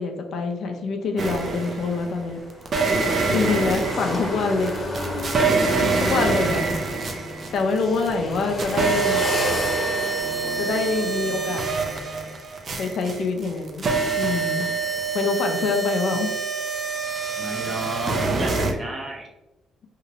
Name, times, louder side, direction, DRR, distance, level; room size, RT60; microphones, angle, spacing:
voice 1, 0.0-2.4 3.3-4.7 5.8-6.8 7.5-9.2 10.6-11.7 12.8-13.9 14.2-14.7 15.1-16.3, left 4 dB, 70° left, 4 dB, 0.4 m, -25 dB
sound 1, 1.2-2.1 2.7-8.1 8.4-18.7, right 4 dB, 50° right, 0.5 m, -25 dB
sound 2, 1.4-12.3 12.6-12.7 14.7-14.9, left 1 dB, 30° left, 0.9 m, -33 dB
sound 3, 3.8-12.3, right 2 dB, 75° right, 1.3 m, -39 dB
voice 2, 14.5-15.0 17.4-19.3, right 1 dB, 25° right, 0 dB, 0.8 m, -33 dB
2.9 x 2.8 x 2.7 m, 0.98 s
cardioid pair, 90°, 0 cm